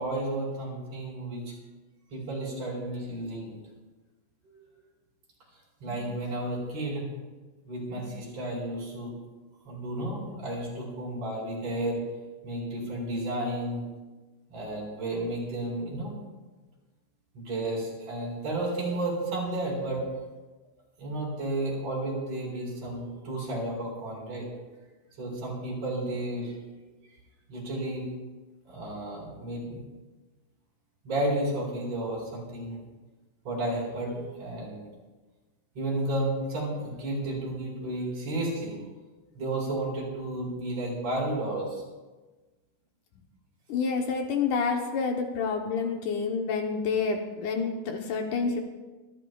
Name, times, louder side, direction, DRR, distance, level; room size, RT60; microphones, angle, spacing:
voice 1, 0.0-1.5 2.1-3.6 4.4-4.7 5.8-7.1 7.7-9.1 9.7-12.0 12.4-13.9 14.5-16.1 17.3-20.0 21.0-24.5 25.2-26.6 27.5-28.1 28.7-29.8 31.0-32.8 33.5-34.9 35.8-38.9 39.4-41.8, right 1 dB, 45° right, -4 dB, 5.4 m, -32 dB
voice 2, 43.7-48.6, left 5 dB, 70° left, 3 dB, 2.2 m, -28 dB
24.5 x 12.5 x 2.3 m, 1.2 s
omnidirectional pair, 4.0 m